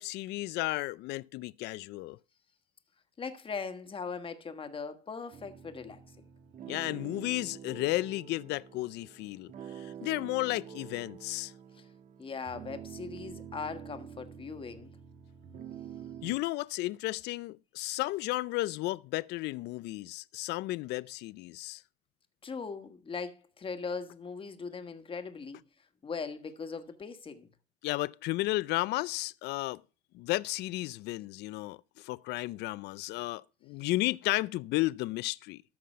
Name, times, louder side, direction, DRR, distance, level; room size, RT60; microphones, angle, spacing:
voice 1, 0.0-2.2 6.7-11.5 16.2-21.8 27.8-29.8 30.1-35.6, left 19 dB, 80° left, 0.4 m, -33 dB
voice 2, 3.2-6.0 11.7-11.8 12.2-14.9 22.4-25.6 26.0-27.5, left 5 dB, 30° left, 1.5 m, -40 dB
sound 1, 5.3-16.4, right 8 dB, 50° right, 1.4 m, -47 dB
13.5 x 5.9 x 5.5 m
cardioid pair, 110°, 17 cm